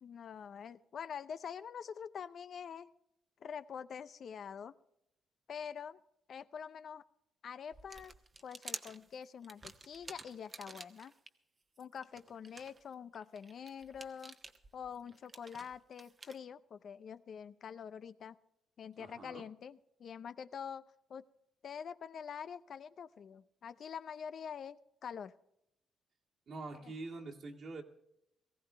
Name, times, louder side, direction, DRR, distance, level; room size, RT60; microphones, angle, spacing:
voice 1, 0.0-2.9 3.4-4.7 5.5-6.0 6.3-7.0 7.4-8.1 8.4-11.1 11.8-14.4 14.7-18.4 18.8-20.8 21.1-21.2 21.6-25.3 26.7-26.9, left 7 dB, 55° left, 14 dB, 0.6 m, -46 dB
sound 1, 7.7-11.3 11.8-16.4, right 3 dB, 30° right, 1.1 m, -50 dB
voice 2, 19.0-19.5 26.5-27.8, right 3 dB, 55° right, 2 dB, 2.0 m, -45 dB
19.0 x 15.5 x 3.3 m, 0.82 s
cardioid pair, 90°, 0 cm